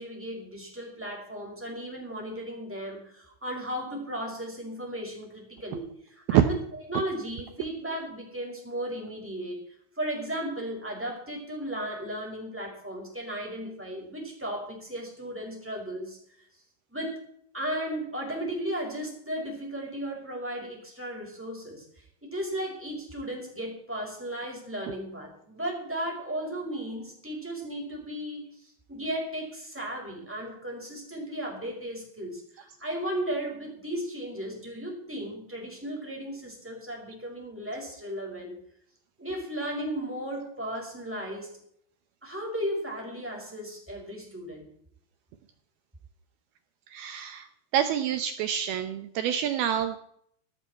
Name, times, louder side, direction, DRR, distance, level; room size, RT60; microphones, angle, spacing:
voice 1, 0.0-9.6 10.0-16.2 16.9-17.3 17.5-38.6 39.2-41.6 42.2-44.7, right 1 dB, 5° right, -2 dB, 5.1 m, -35 dB
voice 2, 46.9-47.5 47.7-50.0, right 9 dB, 85° right, 9 dB, 2.2 m, -28 dB
15.5 x 13.5 x 4.5 m, 0.66 s
omnidirectional pair, 5.6 m